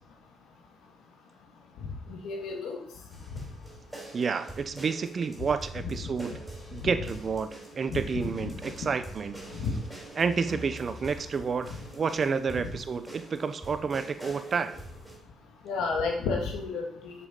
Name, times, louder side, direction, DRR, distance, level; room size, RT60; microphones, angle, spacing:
voice 1, 2.1-2.8 5.8-5.9 6.8-7.0 7.9-8.0 8.4-8.5 9.6-9.7 15.7-17.1, left 4 dB, 80° left, 1 dB, 2.3 m, -31 dB
sound 1, 3.1-15.2, right 1 dB, 5° right, 3.9 m, -45 dB
voice 2, 4.1-6.3 6.7-9.4 10.2-14.8, right 5 dB, 40° right, 11 dB, 0.7 m, -30 dB
7.1 x 7.0 x 5.4 m, 0.68 s
cardioid pair, 95°, 0 cm